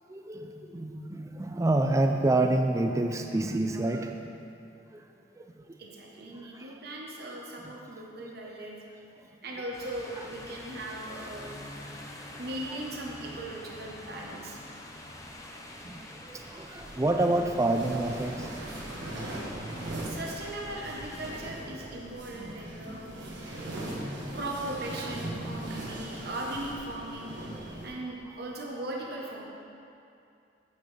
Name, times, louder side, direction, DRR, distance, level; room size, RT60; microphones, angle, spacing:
voice 1, 0.1-4.4 4.9-5.1 5.4-5.8 6.2-6.7 7.6-7.7 9.2-9.3 10.2-10.3 15.8-18.5, right 2 dB, 15° right, 5 dB, 0.3 m, -28 dB
voice 2, 5.8-8.8 9.4-11.5 12.4-14.6 20.0-23.2 23.5-24.1 24.3-29.4, right 1 dB, 55° right, -2 dB, 1.0 m, -38 dB
sound 1, 9.7-21.3, left 1 dB, 15° left, 0.6 m, -46 dB
sound 2, 16.7-27.9, right 1 dB, 80° right, 1.4 m, -39 dB
9.4 x 8.5 x 3.3 m, 2.6 s
head